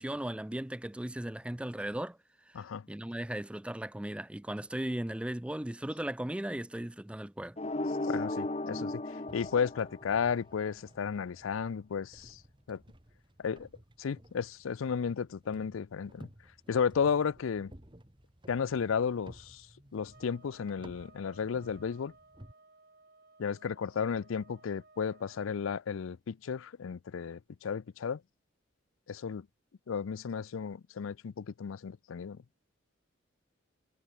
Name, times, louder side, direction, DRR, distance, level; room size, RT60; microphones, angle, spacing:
voice 1, 0.0-2.2 2.5-7.6, right 1 dB, 5° right, 0.3 m, -37 dB
voice 2, 2.5-2.9 8.1-12.4 12.7-12.8 13.4-13.7 14.0-16.3 16.7-17.7 18.5-19.7 19.9-22.1 23.4-28.2 29.1-29.5 29.9-32.4, left 6 dB, 80° left, 0.4 m, -33 dB
sound 1, 7.6-10.5, left 2 dB, 30° left, 1.0 m, -35 dB
sound 2, 9.3-22.5, right 1 dB, 25° right, 2.1 m, -56 dB
sound 3, 20.1-25.5, right 3 dB, 50° right, 5.7 m, -60 dB
head